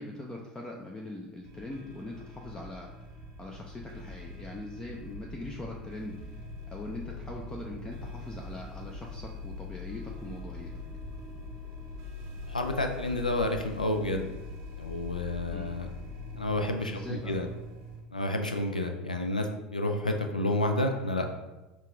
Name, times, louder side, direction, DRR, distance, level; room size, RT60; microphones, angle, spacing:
voice 1, 0.0-2.9 3.4-10.7 15.5-15.7 16.9-17.4, left 2 dB, 15° left, 0 dB, 0.5 m, -41 dB
sound 1, 1.4-18.0, left 2 dB, 55° right, 0.6 m, -42 dB
voice 2, 12.5-14.3 14.8-15.9 16.4-17.5 18.1-21.3, left 1 dB, 90° left, 4 dB, 0.3 m, -30 dB
5.6 x 2.4 x 3.3 m, 1.1 s
figure-of-eight pair, 70°, 4 cm